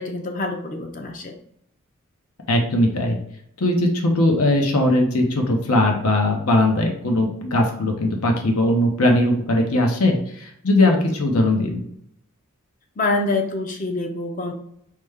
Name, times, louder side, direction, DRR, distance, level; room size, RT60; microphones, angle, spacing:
voice 1, 0.0-1.4 13.0-14.5, left 2 dB, 35° left, 3 dB, 0.5 m, -26 dB
voice 2, 2.5-3.2 3.6-11.8, left 1 dB, 85° left, 2 dB, 0.8 m, -19 dB
4.9 x 2.2 x 3.5 m, 0.71 s
head